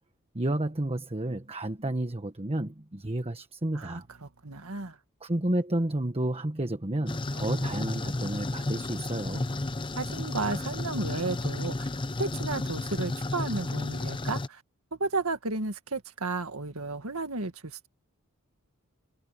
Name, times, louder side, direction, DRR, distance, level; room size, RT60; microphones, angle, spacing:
voice 1, 0.3-4.1 5.2-9.5, right 1 dB, 25° right, 1.3 m, -31 dB
voice 2, 3.7-5.0 10.0-11.9 12.2-14.6 15.0-17.9, right 3 dB, 70° right, 2.0 m, -33 dB
sound 1, 7.1-14.5, left 2 dB, 20° left, 0.6 m, -32 dB
head